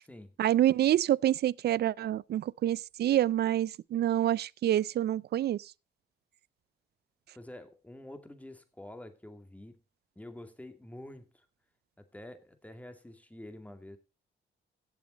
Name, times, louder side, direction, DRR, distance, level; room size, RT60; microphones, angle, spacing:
voice 1, 0.4-5.7, right 12 dB, 55° right, 0.5 m, -27 dB
voice 2, 7.3-9.8 10.2-11.5 12.0-14.0, left 1 dB, 5° left, 2.2 m, -48 dB
16.5 x 7.1 x 4.1 m
cardioid pair, 90°, 20 cm